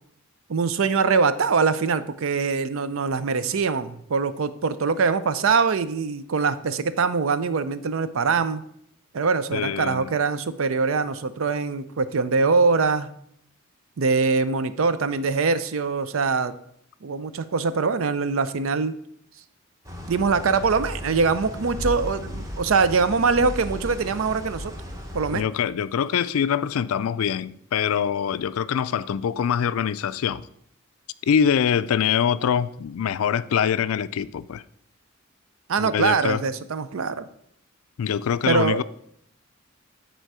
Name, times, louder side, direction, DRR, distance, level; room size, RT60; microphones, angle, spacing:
voice 1, 0.5-8.6 9.1-13.1 14.0-16.5 17.0-19.0 20.1-24.7 25.1-25.4 35.7-37.3 38.5-38.8, right 4 dB, 70° right, 0.5 m, -23 dB
voice 2, 9.5-10.1 25.3-30.5 31.2-34.6 35.8-36.4 38.0-38.8, left 8 dB, 85° left, 0.4 m, -24 dB
sound 1, 19.8-25.4, left 1 dB, 15° right, 0.9 m, -35 dB
9.2 x 4.4 x 4.7 m
head